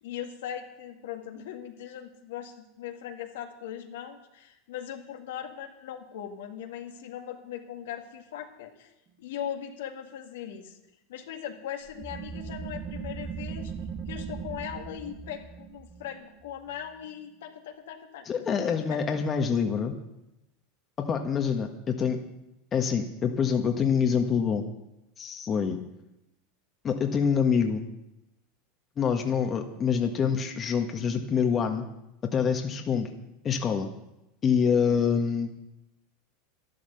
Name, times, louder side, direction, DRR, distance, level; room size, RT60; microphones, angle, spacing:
voice 1, 0.0-8.9 9.2-10.8 11.1-13.7 14.1-19.0 34.9-35.0, left 9 dB, 75° left, 3 dB, 2.0 m, -39 dB
sound 1, 11.9-17.2, right 6 dB, 35° right, 1.5 m, -39 dB
voice 2, 18.2-20.0 21.0-22.2 22.7-24.7 25.2-25.8 26.8-27.8 29.0-31.8 32.3-33.1 33.4-33.9 34.4-35.5, left 6 dB, 30° left, 4 dB, 1.7 m, -26 dB
12.0 x 12.0 x 7.0 m, 0.90 s
hypercardioid pair, 95°, 0 cm